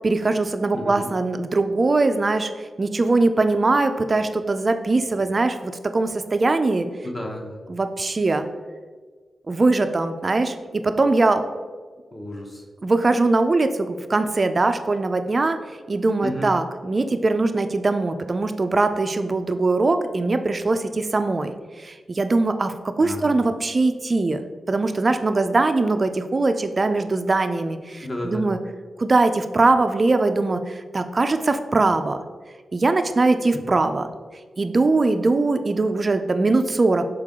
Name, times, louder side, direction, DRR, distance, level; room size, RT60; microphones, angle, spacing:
voice 1, 0.0-6.9 7.7-8.4 9.5-11.4 12.8-15.6 15.9-21.5 21.8-24.4 24.7-28.6 29.0-32.2 32.7-34.1 34.6-37.1, right 3 dB, 30° right, 8 dB, 0.4 m, -21 dB
voice 2, 0.7-1.1 7.0-7.6 12.1-12.6 16.2-16.5 23.0-23.4 28.0-28.5, left 1 dB, 20° left, 1 dB, 0.9 m, -31 dB
6.6 x 4.5 x 3.6 m, 1.4 s
wide cardioid pair, 150°, 0 cm